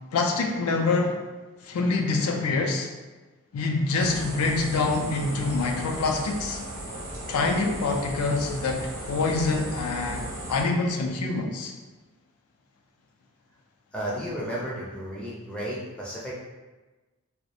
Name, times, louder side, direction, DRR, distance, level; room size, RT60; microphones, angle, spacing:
voice 1, 0.1-1.2 1.6-2.9 3.5-6.6 7.3-11.7, left 3 dB, 80° left, 2 dB, 0.4 m, -26 dB
sound 1, 4.0-10.6, right 1 dB, 75° right, 0.6 m, -37 dB
voice 2, 13.9-16.4, equal, 5° left, -6 dB, 0.4 m, -33 dB
2.3 x 2.0 x 2.7 m, 1.2 s
head